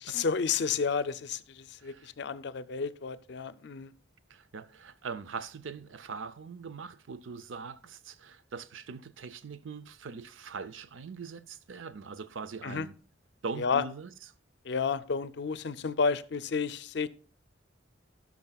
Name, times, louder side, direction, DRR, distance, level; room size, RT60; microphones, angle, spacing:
voice 1, 0.1-3.9 12.6-12.9 13.6-13.8 14.7-17.1, left 5 dB, 60° left, 0.5 m, -31 dB
voice 2, 1.8-2.1 4.3-13.0 13.4-14.1, right 5 dB, 90° right, 0.5 m, -42 dB
17.5 x 6.0 x 2.3 m
head